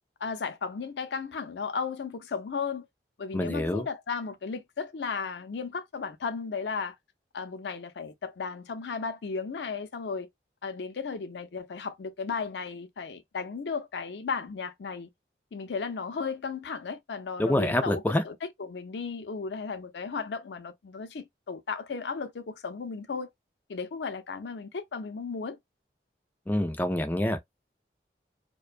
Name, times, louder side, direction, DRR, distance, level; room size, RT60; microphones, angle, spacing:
voice 1, 0.2-2.9 3.2-7.0 7.3-10.3 10.6-15.1 15.5-23.3 23.7-25.6, left 5 dB, 75° left, 0.5 m, -35 dB
voice 2, 3.3-3.9 17.4-18.2 26.5-27.4, left 1 dB, 10° left, 0.3 m, -26 dB
2.5 x 2.1 x 2.4 m
head